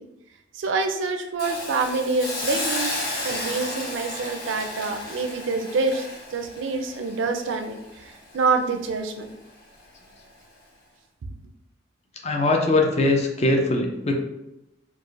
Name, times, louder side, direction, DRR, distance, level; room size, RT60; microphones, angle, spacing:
voice 1, 0.5-6.1 6.3-9.3, right 4 dB, 75° right, 6 dB, 0.4 m, -26 dB
Hiss, 1.4-8.4 8.8-9.0, left 1 dB, 50° left, 0.9 m, -33 dB
voice 2, 12.2-14.1, left 2 dB, 35° left, 2 dB, 0.4 m, -21 dB
4.6 x 2.4 x 2.4 m, 0.91 s
head